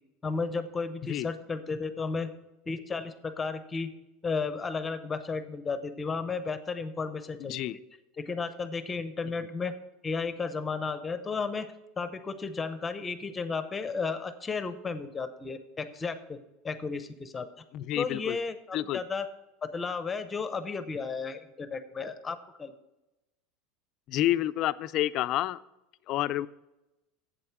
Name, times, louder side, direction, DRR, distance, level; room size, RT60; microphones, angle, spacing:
voice 1, 0.2-2.3 2.7-3.9 4.2-7.6 8.2-9.7 10.0-11.7 12.0-16.4 16.6-17.5 18.0-19.2 19.7-22.7, left 4 dB, 15° left, 11 dB, 0.7 m, -33 dB
voice 2, 7.4-7.8 9.4-9.5 17.7-18.4 18.7-19.0 24.1-25.6 26.1-26.5, left 14 dB, 45° left, 15 dB, 0.3 m, -29 dB
7.9 x 7.8 x 5.8 m, 0.96 s
supercardioid pair, 155°, 0 cm